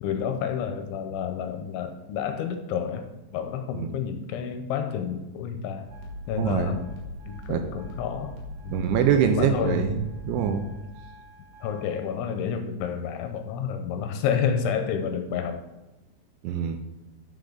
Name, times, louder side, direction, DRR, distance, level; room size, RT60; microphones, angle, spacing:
voice 1, 0.0-3.1 3.3-5.9 6.3-6.9 7.3-8.4 8.6-8.9 9.3-9.9 10.4-10.6 11.6-15.6, left 7 dB, 80° left, 7 dB, 3.0 m, -29 dB
sound 1, 5.9-12.1, left 1 dB, 65° right, 3.4 m, -41 dB
voice 2, 6.4-6.8 7.5-7.6 8.7-10.7 16.4-16.8, right 8 dB, 85° right, 6 dB, 2.8 m, -24 dB
11.5 x 6.4 x 3.9 m, 1.0 s
omnidirectional pair, 5.6 m